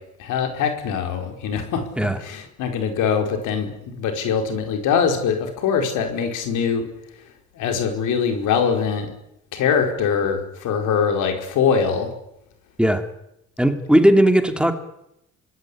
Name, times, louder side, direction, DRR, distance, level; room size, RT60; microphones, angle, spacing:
voice 1, 0.2-1.8 2.2-6.8 7.6-9.1 9.5-12.1, left 6 dB, 90° left, 5 dB, 4.8 m, -22 dB
voice 2, 13.6-14.7, right 1 dB, 5° right, 7 dB, 2.8 m, -17 dB
25.0 x 19.5 x 9.8 m, 0.83 s
cardioid pair, 90°, 30 cm